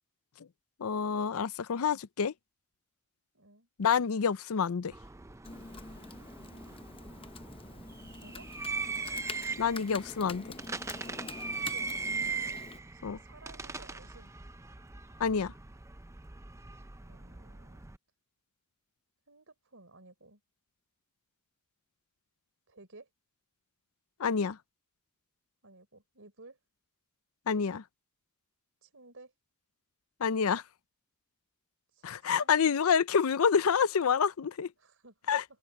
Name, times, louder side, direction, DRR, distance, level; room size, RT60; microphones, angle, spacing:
voice 1, 0.8-2.3 3.8-4.9 9.6-10.5 13.0-13.2 15.2-15.5 24.2-24.6 27.5-27.8 30.2-30.6 32.0-34.7 35.3-35.4, left 6 dB, 70° left, 0.5 m, -28 dB
voice 2, 3.3-3.7 8.2-8.5 11.6-12.6 12.9-14.3 17.0-17.8 19.3-20.4 22.7-23.1 25.6-26.6 28.8-29.3 31.9-32.1 32.4-32.6 34.8-35.4, right 2 dB, 60° right, 5.2 m, -55 dB
sound 1, 4.9-18.0, right 4 dB, 15° right, 0.5 m, -40 dB
Computer keyboard, 5.4-12.8, left 3 dB, 25° left, 0.9 m, -46 dB
open air
head